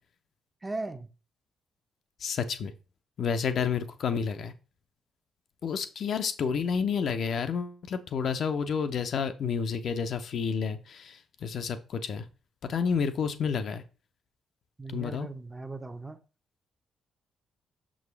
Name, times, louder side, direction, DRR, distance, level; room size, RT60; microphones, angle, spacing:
voice 1, 0.6-1.1 14.8-16.2, right 3 dB, 20° right, 9 dB, 0.8 m, -38 dB
voice 2, 2.2-2.7 3.2-4.5 5.6-12.2 12.6-13.8 14.9-15.3, left 6 dB, 50° left, 9 dB, 0.7 m, -30 dB
6.7 x 6.2 x 3.3 m, 0.34 s
figure-of-eight pair, 40°, 0 cm